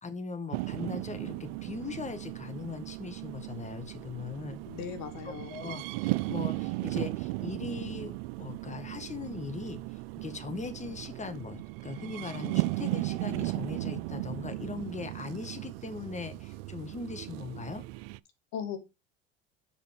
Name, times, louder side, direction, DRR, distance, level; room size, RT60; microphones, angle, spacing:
voice 1, 0.0-4.6 5.2-9.8 10.2-17.8, left 4 dB, 20° left, 9 dB, 1.7 m, -40 dB
sound 1, 0.5-18.2, right 21 dB, 70° right, 0.4 m, -36 dB
voice 2, 4.7-5.6 18.5-18.8, left 8 dB, 65° left, 9 dB, 2.1 m, -38 dB
7.2 x 5.0 x 5.2 m, 0.26 s
hypercardioid pair, 70°, 31 cm